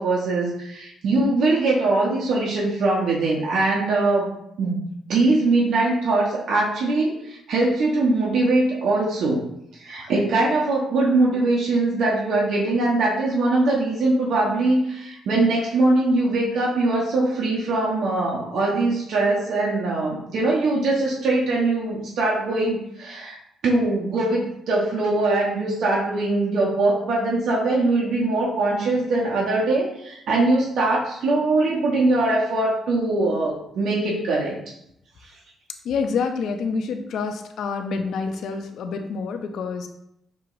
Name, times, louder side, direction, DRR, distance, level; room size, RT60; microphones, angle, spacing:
voice 1, 0.0-4.3 4.6-4.8 5.1-9.4 9.7-23.4 23.6-34.6, right 2 dB, 70° right, -4 dB, 1.0 m, -22 dB
voice 2, 35.8-39.9, left 5 dB, 70° left, 6 dB, 0.5 m, -27 dB
6.1 x 2.9 x 2.5 m, 0.77 s
cardioid pair, 90°, 0 cm